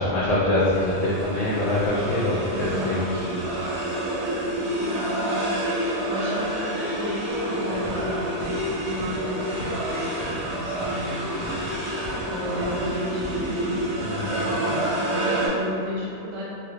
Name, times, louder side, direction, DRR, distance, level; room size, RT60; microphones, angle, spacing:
voice 1, 0.0-3.4 14.0-14.4, left 1 dB, 80° left, -7 dB, 0.7 m, -24 dB
sound 1, 0.6-15.5, right 1 dB, 55° right, 0.8 m, -28 dB
voice 2, 2.5-3.0 3.3-3.6 4.9-8.3 8.8-11.3 12.2-13.7 14.1-16.4, equal, 85° right, -7 dB, 1.5 m, -33 dB
sound 2, 7.3-13.8, equal, 25° left, 0.4 m, -38 dB
3.9 x 2.1 x 3.3 m, 2.6 s
omnidirectional pair, 1.8 m